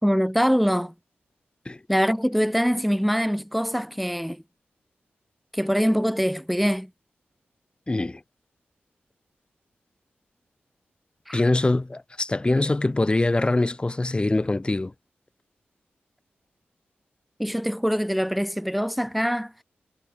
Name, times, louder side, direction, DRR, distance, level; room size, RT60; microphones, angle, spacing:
voice 1, 0.0-0.9 1.9-4.4 5.5-6.9 11.3-11.4 17.4-19.5, equal, ahead, 2.0 m, -23 dB
voice 2, 7.9-8.2 11.3-14.9, left 2 dB, 25° left, 1.0 m, -23 dB
cardioid pair, 65°, 4 cm